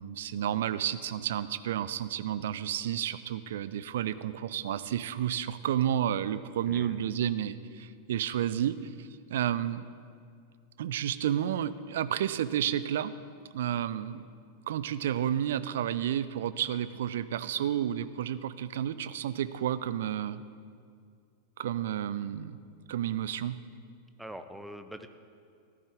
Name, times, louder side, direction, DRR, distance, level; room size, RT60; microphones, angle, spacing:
voice 1, 0.0-9.9 10.8-13.1 13.5-14.3 14.7-20.4 21.6-22.6 22.9-23.6, right 10 dB, 60° right, 15 dB, 0.4 m, -31 dB
voice 2, 6.7-7.0 24.2-25.1, right 1 dB, 5° right, 8 dB, 0.7 m, -43 dB
14.5 x 12.0 x 3.6 m, 2.2 s
figure-of-eight pair, 90°, 0 cm